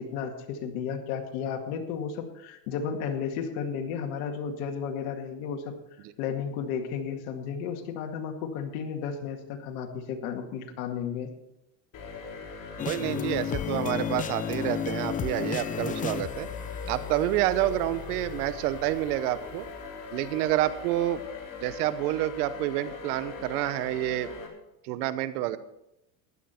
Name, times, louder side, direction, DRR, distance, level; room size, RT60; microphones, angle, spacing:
voice 1, 0.0-5.8 6.2-11.3, left 7 dB, 75° left, 4 dB, 2.1 m, -33 dB
sound 1, 11.9-24.5, left 4 dB, 45° left, 3.8 m, -41 dB
sound 2, 12.8-19.6, left 8 dB, 20° left, 0.4 m, -34 dB
voice 2, 12.8-16.5 16.9-19.7 20.1-21.2 21.6-24.3 24.8-25.6, right 14 dB, 80° right, 14 dB, 1.1 m, -28 dB
15.0 x 11.0 x 4.4 m, 0.85 s
supercardioid pair, 115°, 45 cm